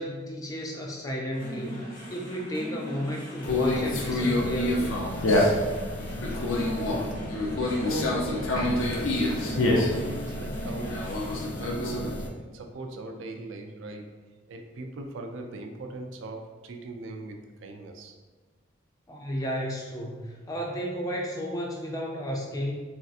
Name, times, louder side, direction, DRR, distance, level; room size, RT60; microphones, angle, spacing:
voice 1, 0.0-1.8 2.1-5.0 19.1-22.7, equal, 15° left, 0 dB, 0.3 m, -33 dB
sound 1, 1.3-11.5, equal, 45° left, 0.9 m, -42 dB
Conversation, 3.4-12.3, left 1 dB, 80° left, 0.5 m, -27 dB
voice 2, 6.8-11.3 11.6-14.2 14.5-18.2, right 2 dB, 70° right, 4 dB, 0.3 m, -39 dB
3.2 x 2.6 x 2.4 m, 1.3 s
head